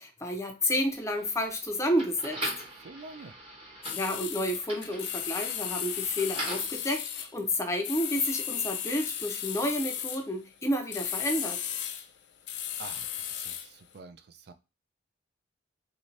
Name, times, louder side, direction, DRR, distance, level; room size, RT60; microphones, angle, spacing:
voice 1, 0.0-2.4 3.9-11.6, left 1 dB, 15° left, 4 dB, 0.5 m, -30 dB
sound 1, 0.9-6.8, right 1 dB, 30° right, 1.0 m, -41 dB
voice 2, 2.8-3.3 12.8-14.5, right 4 dB, 60° right, 9 dB, 0.4 m, -47 dB
sound 2, 3.8-7.3 7.8-10.3 10.9-12.1 12.5-13.7, left 10 dB, 65° left, 0.4 m, -35 dB
2.6 x 2.6 x 3.2 m, 0.29 s
head